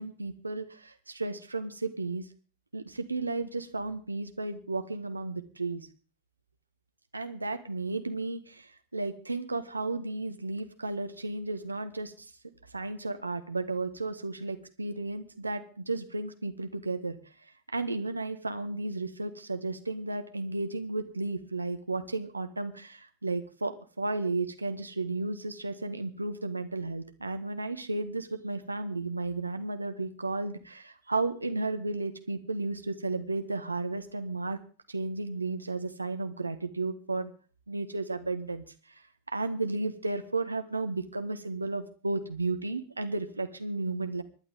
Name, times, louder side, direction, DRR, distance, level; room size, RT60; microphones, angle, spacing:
voice 1, 0.0-2.2 2.7-5.9 7.1-8.7 8.9-12.1 12.7-17.2 17.7-34.6 34.9-37.3 37.7-38.6 39.3-44.2, right 3 dB, 80° right, 8 dB, 1.4 m, -33 dB
25.5 x 11.0 x 3.6 m, 0.38 s
figure-of-eight pair, 90°, 0 cm